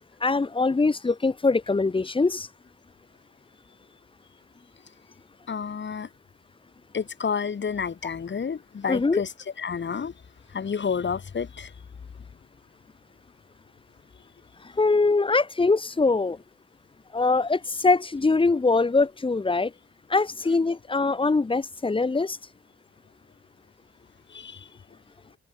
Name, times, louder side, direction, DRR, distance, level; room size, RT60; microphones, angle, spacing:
voice 1, 0.2-2.5 8.9-9.2 14.8-16.4 17.1-19.7 20.1-22.4, left 3 dB, 15° left, 0.9 m, -23 dB
voice 2, 5.5-6.1 6.9-9.3 9.6-10.1 10.5-11.7 24.3-24.7, left 6 dB, 40° left, 2.7 m, -30 dB
open air
cardioid pair, 90°, 30 cm